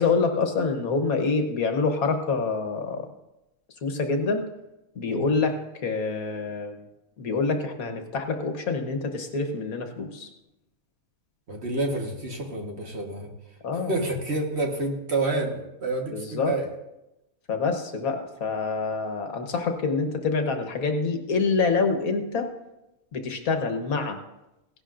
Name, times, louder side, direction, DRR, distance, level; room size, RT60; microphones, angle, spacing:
voice 1, 0.0-3.1 3.8-4.5 4.9-6.8 7.2-10.3 13.6-13.9 16.1-16.5 17.5-22.5 23.1-24.2, left 4 dB, 70° left, 5 dB, 1.6 m, -26 dB
voice 2, 11.5-13.3 13.8-16.7, right 2 dB, 45° right, 1 dB, 1.6 m, -28 dB
16.5 x 11.5 x 2.5 m, 0.93 s
omnidirectional pair, 1.6 m